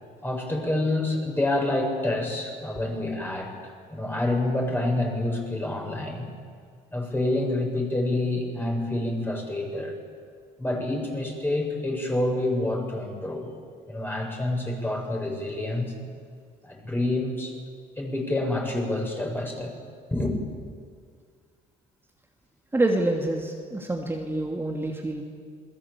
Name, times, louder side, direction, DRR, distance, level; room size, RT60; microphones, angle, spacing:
voice 1, 0.2-6.3 6.9-10.0 10.6-13.5 13.9-15.9 16.6-17.5 18.0-19.8 20.1-20.4, left 1 dB, 10° left, 1 dB, 7.2 m, -27 dB
voice 2, 22.7-25.2, right 2 dB, 15° right, 1 dB, 2.7 m, -26 dB
28.5 x 21.5 x 8.5 m, 2.1 s
cardioid pair, 110°, 17 cm